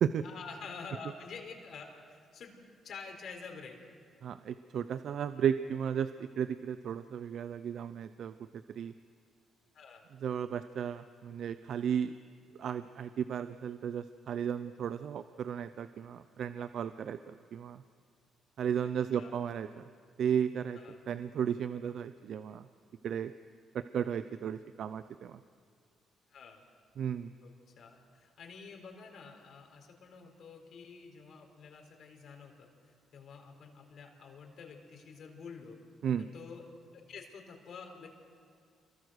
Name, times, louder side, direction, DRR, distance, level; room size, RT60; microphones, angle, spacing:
voice 1, 0.2-2.5 2.8-3.8 9.7-10.0 18.8-19.3 20.7-21.0 26.3-26.6 27.4-32.7 33.1-35.8 36.2-36.7 36.9-38.1, left 5 dB, 65° left, 3 dB, 4.2 m, -48 dB
voice 2, 4.2-8.3 8.7-8.9 10.2-12.1 12.6-17.8 18.6-19.8 20.2-20.8 21.1-22.7 23.0-23.3 23.7-25.4 27.0-27.3 36.0-36.3, right 8 dB, 65° right, 12 dB, 0.6 m, -34 dB
27.5 x 23.0 x 6.5 m, 2.1 s
cardioid pair, 90°, 0 cm